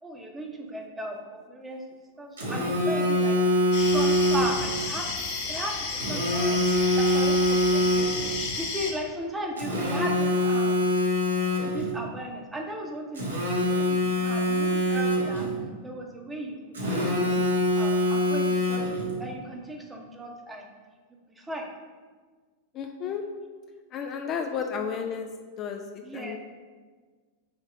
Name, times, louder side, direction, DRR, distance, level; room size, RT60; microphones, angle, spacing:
voice 1, 0.0-1.8 2.2-3.4 3.9-5.8 6.1-6.6 6.9-8.0 8.6-10.8 11.6-15.5 15.8-17.4 17.8-20.7 21.3-21.7 26.0-26.4, right 1 dB, 10° right, 1 dB, 1.0 m, -36 dB
Telephone, 2.4-4.7 6.0-8.3 9.6-11.9 13.2-15.5 16.7-19.1, left 1 dB, 75° right, 1.5 m, -24 dB
sound 1, 3.7-8.9, left 4 dB, 50° left, 1.3 m, -32 dB
voice 2, 22.7-23.2 23.9-25.3 25.6-26.4, left 7 dB, 35° left, 4 dB, 0.5 m, -32 dB
5.2 x 4.1 x 5.0 m, 1.5 s
figure-of-eight pair, 95°, 0 cm